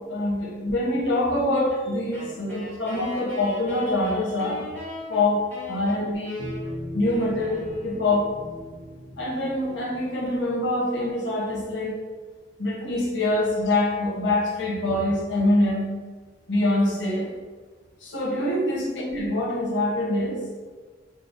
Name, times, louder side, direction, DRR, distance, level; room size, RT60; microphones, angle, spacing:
voice 1, 0.1-4.6 5.1-6.5 6.9-8.3 9.2-11.9 12.6-15.9 16.5-17.3 18.0-20.4, left 1 dB, 70° left, -2 dB, 0.8 m, -25 dB
Wind instrument woodwind instrument, 2.1-8.4, left 1 dB, 10° left, 1.4 m, -41 dB
sound 1, 6.4-10.8, left 1 dB, 25° left, 0.7 m, -39 dB
4.7 x 2.0 x 2.6 m, 1.4 s
head